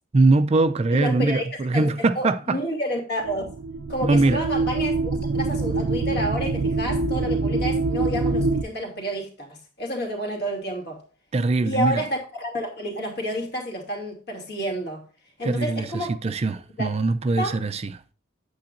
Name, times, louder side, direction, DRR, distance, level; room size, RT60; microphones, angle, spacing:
voice 1, 0.1-2.6 4.0-4.4 11.3-12.0 15.4-17.8, right 3 dB, 35° right, 0.4 m, -22 dB
voice 2, 0.9-3.4 3.9-11.0 11.6-15.0 15.4-16.1 16.8-17.0 17.4-17.6, equal, 55° left, 2.5 m, -30 dB
sound 1, 3.2-8.6, right 3 dB, 90° right, 0.5 m, -25 dB
8.6 x 7.8 x 2.5 m
head